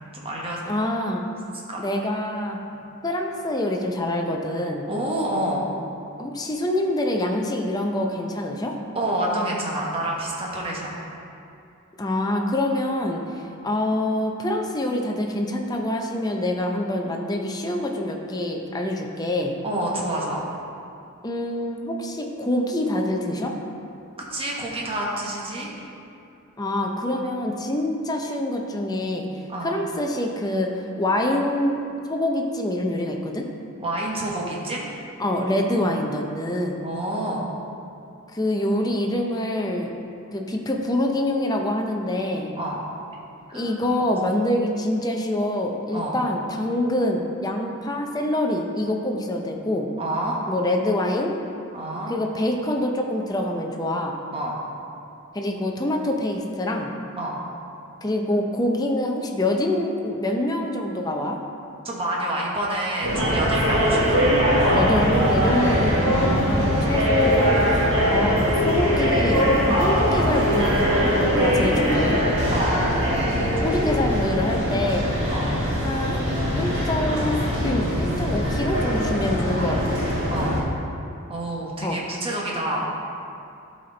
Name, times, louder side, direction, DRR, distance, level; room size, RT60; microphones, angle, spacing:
voice 1, 0.1-0.7 1.7-1.8 4.9-5.7 8.9-11.0 13.4-13.5 19.6-20.4 24.3-25.7 29.5-29.7 33.8-34.9 35.7-35.9 36.8-37.5 42.6-42.8 43.5-43.7 45.9-46.1 50.0-50.4 51.7-52.2 54.3-54.5 57.2-57.3 61.8-64.1 65.5-65.7 69.7-69.9 72.5-72.7 73.4-73.6 75.3-75.5 80.3-80.6 81.3-82.9, right 1 dB, 25° right, -3 dB, 1.2 m, -28 dB
voice 2, 0.7-1.2 1.8-2.6 3.0-4.8 6.2-8.7 12.0-13.2 13.6-19.5 21.2-23.5 26.6-29.3 29.6-30.7 31.0-31.8 32.1-33.4 35.2-36.8 38.3-39.9 40.3-42.5 43.5-49.9 50.5-51.4 52.1-54.2 55.3-56.9 58.0-61.4 64.7-68.4 68.6-72.2 73.6-75.2 75.8-76.3 76.5-80.0 81.8-82.0, left 1 dB, 20° left, 1 dB, 0.6 m, -25 dB
sound 1, 63.0-80.6, equal, 55° right, 1.8 m, -21 dB
11.5 x 4.3 x 3.9 m, 2.6 s
head